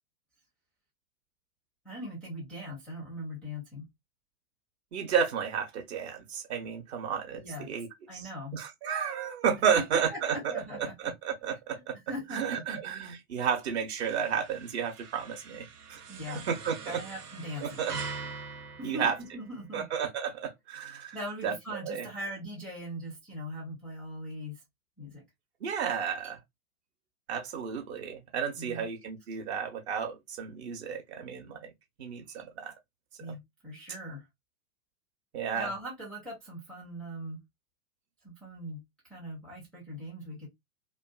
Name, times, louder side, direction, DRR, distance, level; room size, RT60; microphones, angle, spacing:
voice 1, 1.8-3.9 7.3-7.7 8.1-8.6 9.7-11.1 11.7-12.8 16.1-16.5 16.9-17.8 18.8-19.9 21.1-24.6 25.0-25.2 28.5-28.8 33.2-34.3 35.6-37.4 38.2-38.8 39.1-40.5, equal, 5° left, 0.5 m, -40 dB
voice 2, 4.9-7.9 8.1-10.5 11.0-12.0 12.3-17.0 17.6-17.9 18.8-19.1 19.7-21.2 21.4-22.1 25.6-26.4 27.3-31.7 32.0-32.7 35.3-35.7, right 7 dB, 45° right, 0.8 m, -32 dB
sound 1, 14.0-19.8, right 4 dB, 85° right, 0.6 m, -43 dB
2.5 x 2.3 x 2.3 m
figure-of-eight pair, 105°, 45 cm